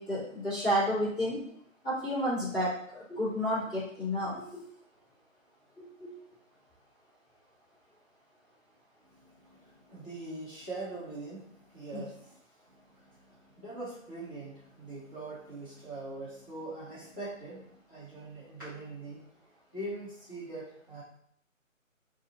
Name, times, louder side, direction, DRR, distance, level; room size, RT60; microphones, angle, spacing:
voice 1, 0.0-1.4 1.8-4.7 5.8-6.1 11.9-12.0, equal, 5° left, -19 dB, 1.2 m, -31 dB
voice 2, 9.1-12.1 12.7-19.2 19.7-21.0, right 2 dB, 20° right, -18 dB, 0.9 m, -42 dB
2.6 x 2.5 x 3.6 m, 0.66 s
figure-of-eight pair, 165°, 40 cm